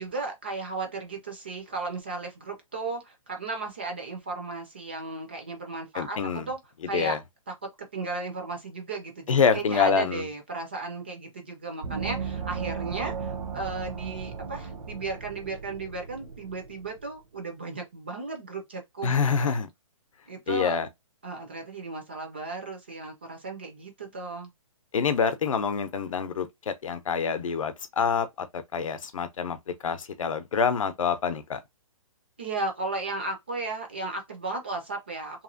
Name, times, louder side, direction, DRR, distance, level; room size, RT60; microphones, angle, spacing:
voice 1, 0.0-6.6 6.9-7.2 7.5-19.6 20.3-20.8 21.2-24.5 32.4-35.4, right 3 dB, 20° right, 0.3 m, -35 dB
voice 2, 5.9-6.5 6.9-7.2 9.3-10.3 19.0-19.7 20.5-20.9 24.9-29.6 29.8-31.6, left 6 dB, 65° left, 0.6 m, -26 dB
Gong, 11.8-17.1, right 6 dB, 80° right, 0.9 m, -36 dB
2.9 x 2.4 x 2.5 m
hypercardioid pair, 175°, 18 cm